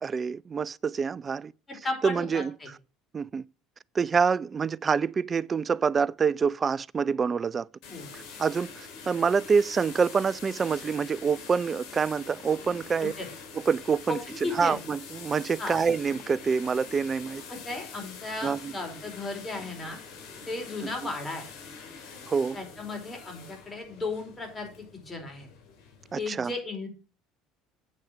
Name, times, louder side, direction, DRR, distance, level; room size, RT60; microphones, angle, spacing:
voice 1, 0.0-1.5 2.0-2.5 3.1-3.4 3.9-7.7 8.1-13.1 13.5-17.4 18.4-18.7 20.8-20.9 22.3-22.6 26.1-26.5, right 5 dB, 35° right, 0.4 m, -26 dB
voice 2, 1.7-2.7 7.9-8.1 13.0-13.3 14.1-14.9 15.6-15.8 17.5-20.0 20.5-21.4 22.5-25.5 26.1-26.9, left 3 dB, 25° left, 4.7 m, -35 dB
sound 1, 7.8-26.1, left 5 dB, 65° left, 3.7 m, -45 dB
8.6 x 6.4 x 6.3 m
hypercardioid pair, 70°, 0 cm